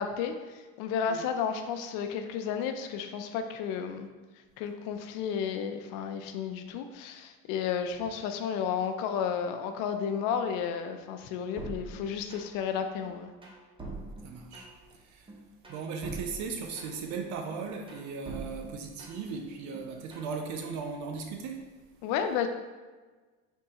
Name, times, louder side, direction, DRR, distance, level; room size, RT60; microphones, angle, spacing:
voice 1, 0.0-4.1 4.6-13.3 22.0-22.5, left 7 dB, 80° left, 7 dB, 0.5 m, -32 dB
sound 1, 11.6-12.7 13.0-14.9 15.3-17.2 17.5-19.4 19.7-20.3, right 2 dB, 15° right, 0.7 m, -44 dB
voice 2, 14.2-14.7 14.9-15.3 15.7-21.7, right 5 dB, 60° right, 3 dB, 0.5 m, -37 dB
3.6 x 3.0 x 2.8 m, 1.3 s
cardioid pair, 120°, 32 cm